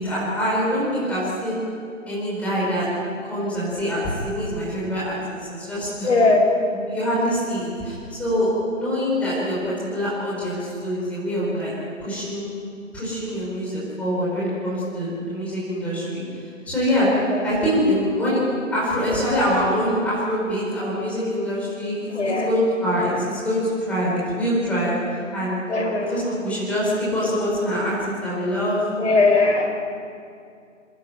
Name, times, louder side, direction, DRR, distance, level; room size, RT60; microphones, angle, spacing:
voice 1, 0.0-1.6 2.1-2.9 3.3-6.1 6.7-11.7 12.0-12.5 12.9-17.1 17.4-18.4 18.7-25.6 26.0-28.8, equal, 5° left, -8 dB, 5.1 m, -24 dB
voice 2, 6.0-6.4 17.3-17.4 22.1-22.5 25.7-26.1 29.0-29.7, left 3 dB, 60° left, 1 dB, 5.9 m, -19 dB
26.5 x 12.0 x 9.4 m, 2.4 s
figure-of-eight pair, 165°, 39 cm